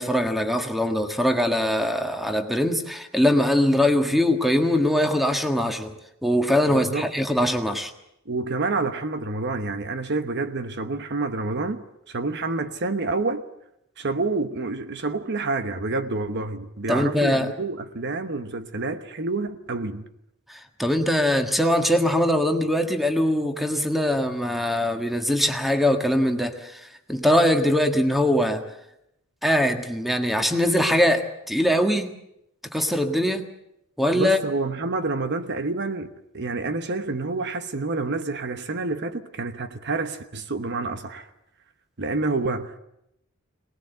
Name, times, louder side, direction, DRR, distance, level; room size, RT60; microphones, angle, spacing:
voice 1, 0.0-5.9 6.2-7.9 16.9-17.5 20.5-28.6 29.4-32.1 32.7-33.5 34.0-34.4, left 1 dB, ahead, 1.6 m, -22 dB
voice 2, 6.7-7.1 8.3-13.4 14.0-20.0 34.1-41.3 42.0-42.8, right 3 dB, 50° right, 1.1 m, -28 dB
23.5 x 19.5 x 8.0 m
head